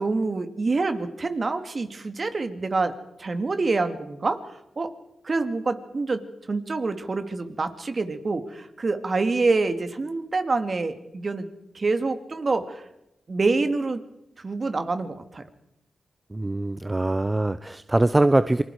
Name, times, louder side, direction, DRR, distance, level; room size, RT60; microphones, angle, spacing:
voice 1, 0.0-2.9 3.2-4.4 4.8-4.9 5.2-6.2 6.5-11.5 11.7-12.8 13.3-14.0 14.4-15.4, right 3 dB, 45° right, 8 dB, 2.3 m, -26 dB
voice 2, 16.3-18.6, right 2 dB, 25° right, 13 dB, 0.8 m, -22 dB
27.5 x 20.5 x 4.9 m, 0.85 s
supercardioid pair, 45°, 0 cm